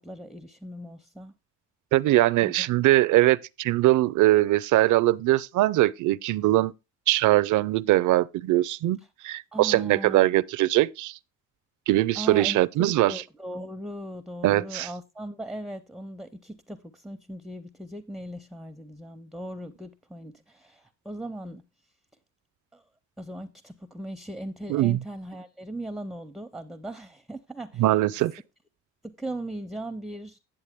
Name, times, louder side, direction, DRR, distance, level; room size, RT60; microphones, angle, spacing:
voice 1, 0.0-1.3 2.4-2.7 9.5-10.4 12.2-21.6 22.7-22.8 23.2-27.8 29.0-30.4, right 1 dB, ahead, 0.5 m, -38 dB
voice 2, 1.9-6.7 7.1-9.0 9.2-11.2 11.9-13.2 14.4-14.9 24.7-25.0 27.8-28.3, right 16 dB, 80° right, 0.5 m, -21 dB
9.0 x 7.2 x 3.4 m
cardioid pair, 90°, 30 cm